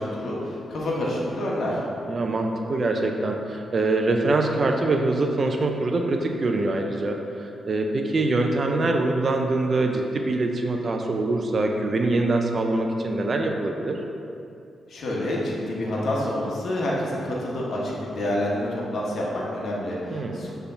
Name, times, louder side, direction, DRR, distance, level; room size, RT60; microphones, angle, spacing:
voice 1, 0.0-1.8 14.9-20.5, left 1 dB, 70° left, -4 dB, 1.3 m, -28 dB
voice 2, 2.1-14.0 20.1-20.5, right 2 dB, 45° right, 3 dB, 0.6 m, -24 dB
6.6 x 3.4 x 5.7 m, 2.7 s
cardioid pair, 80°, 0 cm